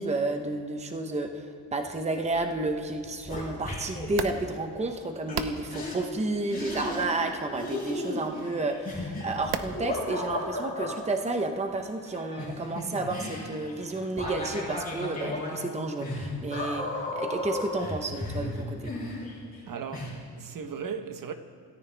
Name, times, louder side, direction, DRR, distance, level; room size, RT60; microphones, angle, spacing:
voice 1, 0.0-18.8, right 2 dB, 15° right, 0.9 m, -31 dB
sound 1, 2.3-2.6 2.9-4.1 5.3-5.4 5.7-6.0 6.5-7.3 7.6-10.9 12.1-19.6 19.9-20.1, left 2 dB, 20° left, 5.0 m, -35 dB
sound 2, 4.0-11.9, right 7 dB, 70° right, 0.9 m, -41 dB
voice 2, 19.7-21.3, right 6 dB, 50° right, 1.0 m, -37 dB
27.0 x 14.0 x 3.4 m
wide cardioid pair, 175°, 43 cm